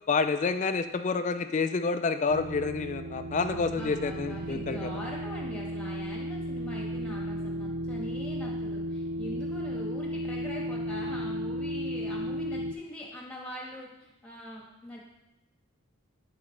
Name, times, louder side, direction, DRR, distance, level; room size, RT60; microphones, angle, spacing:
voice 1, 0.1-4.9, left 4 dB, 35° left, 10 dB, 0.4 m, -28 dB
sound 1, 2.3-12.7, equal, 85° right, 0.5 m, -34 dB
voice 2, 3.4-15.0, equal, 5° left, -3 dB, 1.5 m, -42 dB
12.0 x 4.0 x 3.2 m, 0.94 s
head